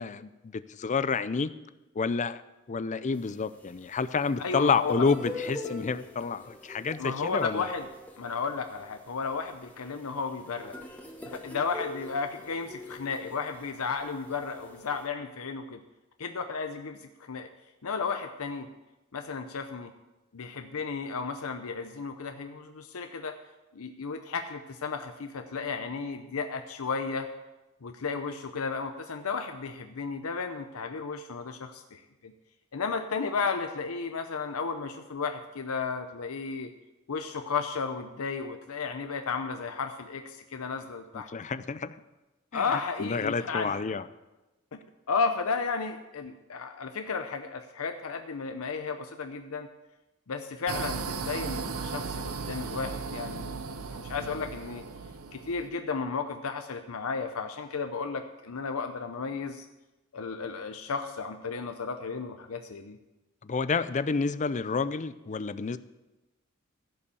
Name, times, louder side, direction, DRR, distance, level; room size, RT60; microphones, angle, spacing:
voice 1, 0.0-1.5 2.0-2.4 2.7-7.7 41.1-41.9 42.5-42.6 43.0-44.0 54.2-54.3 63.4-65.8, left 4 dB, 35° left, 14 dB, 0.5 m, -29 dB
sound 1, 3.1-15.1, left 2 dB, 5° left, 1.3 m, -44 dB
voice 2, 4.4-5.0 7.0-7.9 8.2-10.8 11.3-15.8 16.2-17.5 17.8-18.7 19.1-19.9 20.3-23.3 23.7-27.3 27.8-32.3 32.7-36.7 37.1-41.3 42.5-44.0 44.7-44.8 45.1-49.7 50.3-54.8 55.3-59.6 60.1-63.0, left 5 dB, 85° left, 6 dB, 0.7 m, -33 dB
sound 2, 50.7-55.7, right 4 dB, 75° right, 0.7 m, -36 dB
15.5 x 5.5 x 6.9 m, 1.0 s
head